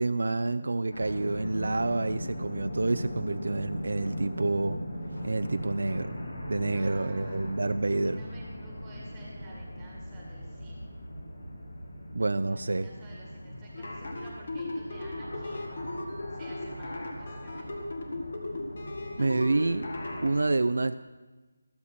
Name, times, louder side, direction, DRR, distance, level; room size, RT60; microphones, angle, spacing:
voice 1, 0.0-4.8 5.2-6.2 6.5-8.2 12.1-12.9 19.2-19.9 20.2-21.0, right 2 dB, 65° right, 10 dB, 0.4 m, -28 dB
sound 1, 0.9-20.4, equal, 75° left, 4.0 m, -39 dB
voice 2, 6.7-7.5 8.0-10.8 12.5-15.7 16.3-17.9, right 2 dB, 5° right, -3 dB, 1.9 m, -52 dB
sound 2, 13.7-20.3, left 2 dB, 40° left, 1.7 m, -37 dB
14.0 x 13.0 x 4.3 m, 1.2 s
figure-of-eight pair, 180°, 0 cm